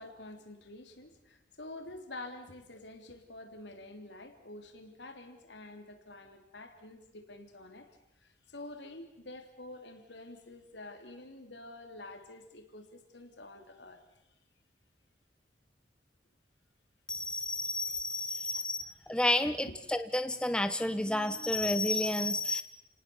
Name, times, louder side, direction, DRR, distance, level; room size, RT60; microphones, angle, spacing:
voice 1, 0.0-7.9 8.2-14.2 19.4-19.8, left 2 dB, 75° left, 5 dB, 3.5 m, -48 dB
voice 2, 17.1-22.6, left 1 dB, 5° left, 10 dB, 0.8 m, -31 dB
30.0 x 19.0 x 7.2 m, 0.88 s
head